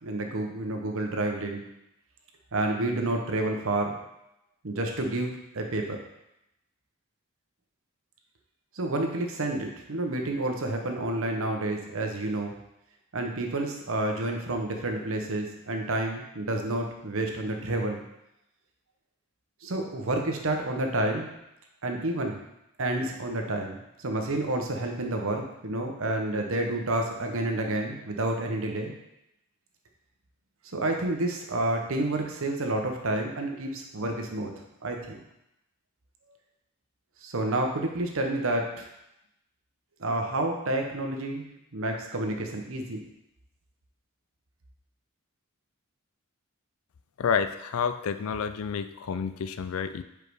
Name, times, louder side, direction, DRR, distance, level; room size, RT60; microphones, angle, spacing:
voice 1, 0.0-1.6 2.5-4.0 4.6-6.0 8.7-12.5 13.1-18.0 19.6-21.3 21.8-22.4 22.8-28.9 30.7-35.2 37.2-38.9 40.0-41.4 41.7-43.0, right 2 dB, 65° right, 2 dB, 1.0 m, -29 dB
voice 2, 47.2-50.0, left 6 dB, 65° left, 11 dB, 0.4 m, -29 dB
5.2 x 4.7 x 4.7 m, 0.86 s
head